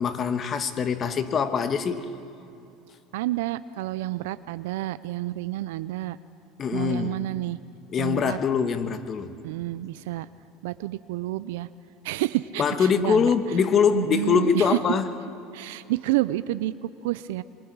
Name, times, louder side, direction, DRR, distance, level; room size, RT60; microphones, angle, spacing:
voice 1, 0.0-2.1 6.6-7.2 7.9-9.3 12.6-15.1, left 6 dB, 40° left, 10 dB, 1.4 m, -23 dB
voice 2, 3.1-6.2 6.7-7.6 8.0-8.4 9.4-10.3 10.6-11.7 12.0-13.3 13.9-14.8 15.5-17.4, right 16 dB, 85° right, 15 dB, 0.5 m, -29 dB
26.0 x 22.5 x 4.7 m, 2.7 s
supercardioid pair, 105°, 0 cm